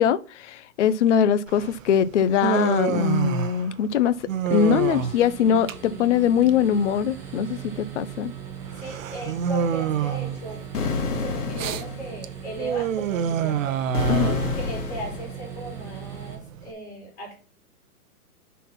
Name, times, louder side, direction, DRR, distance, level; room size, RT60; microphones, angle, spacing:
voice 1, 0.0-4.2 4.5-8.3 14.1-14.4, left 8 dB, 50° left, 0.5 m, -22 dB
Human voice, 1.5-16.7, right 8 dB, 55° right, 0.7 m, -29 dB
sound 1, 4.4-16.3, right 8 dB, 5° right, 0.8 m, -39 dB
voice 2, 8.7-14.2 14.5-17.4, right 2 dB, 30° left, 3.0 m, -38 dB
sound 2, 10.7-12.2 13.9-15.4, left 4 dB, 75° left, 1.8 m, -28 dB
5.7 x 4.1 x 5.7 m
hypercardioid pair, 160°, 46 cm